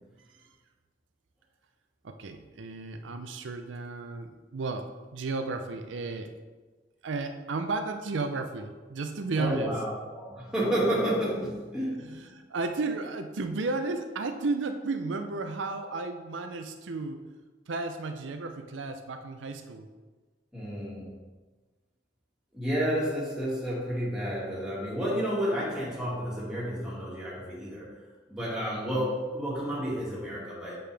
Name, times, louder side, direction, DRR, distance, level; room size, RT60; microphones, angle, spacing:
voice 1, 2.0-6.3 7.0-9.7 12.0-17.2 17.7-19.9, right 3 dB, 90° right, 6 dB, 0.6 m, -33 dB
voice 2, 9.4-12.2 20.5-21.1 22.5-27.9 28.3-30.8, equal, 5° right, -7 dB, 2.1 m, -31 dB
7.7 x 6.7 x 3.4 m, 1.3 s
head